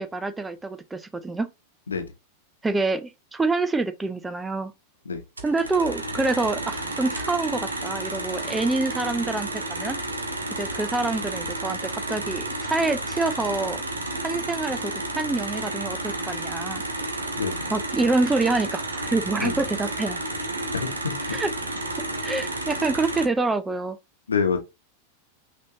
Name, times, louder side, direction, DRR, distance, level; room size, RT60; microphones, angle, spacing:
voice 1, 0.0-1.5 2.6-4.7 5.4-10.0 10.6-13.8 14.2-16.8 17.7-20.2 21.3-21.5 22.2-24.0, right 3 dB, 10° right, 0.4 m, -26 dB
sound 1, 5.4-23.3, right 2 dB, 75° right, 0.9 m, -31 dB
voice 2, 17.4-17.7 19.4-19.6 20.7-21.3 24.3-24.6, left 5 dB, 75° left, 0.9 m, -27 dB
6.0 x 2.8 x 2.7 m
figure-of-eight pair, 90°, 0 cm